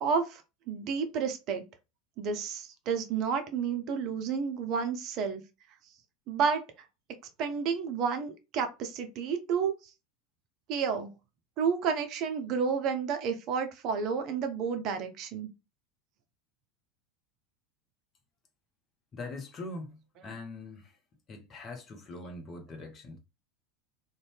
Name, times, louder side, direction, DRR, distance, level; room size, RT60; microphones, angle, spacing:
voice 1, 0.0-0.4 0.7-1.6 2.2-5.4 6.3-6.6 7.4-9.7 10.7-11.1 11.6-15.5, right 6 dB, 45° right, 0.5 m, -30 dB
voice 2, 19.1-20.9 21.3-23.2, left 2 dB, 30° left, 0.8 m, -42 dB
2.6 x 2.1 x 3.3 m
figure-of-eight pair, 75°, 0 cm